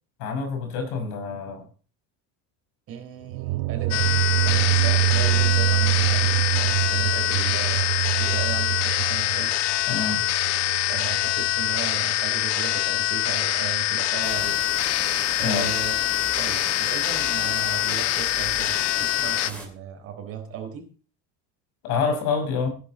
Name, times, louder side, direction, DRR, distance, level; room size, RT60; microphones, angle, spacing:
voice 1, 0.2-1.7 9.9-10.3 15.4-15.7 21.8-22.7, left 5 dB, 75° left, 4 dB, 5.6 m, -27 dB
voice 2, 2.9-4.1 4.4-9.7 10.9-14.6 15.4-16.0 16.4-20.9, right 8 dB, 40° right, 4 dB, 4.0 m, -36 dB
sound 1, 3.2-12.2, right 19 dB, 65° right, 0.8 m, -25 dB
sound 2, 3.9-19.5, left 14 dB, 45° left, 0.8 m, -24 dB
sound 3, 14.2-19.7, right 1 dB, 5° left, 2.9 m, -37 dB
16.5 x 10.5 x 4.2 m, 0.39 s
cardioid pair, 180°, 36 cm